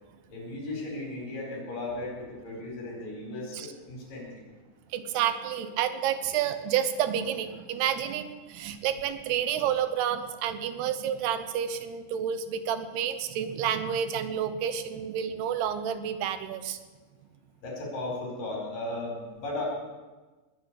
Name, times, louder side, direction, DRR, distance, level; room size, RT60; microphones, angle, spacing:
voice 1, 0.3-4.3 17.6-19.7, left 2 dB, 55° left, -1 dB, 6.0 m, -36 dB
voice 2, 4.9-16.8, right 9 dB, 85° right, 11 dB, 3.0 m, -29 dB
20.5 x 8.5 x 8.3 m, 1.3 s
omnidirectional pair, 4.6 m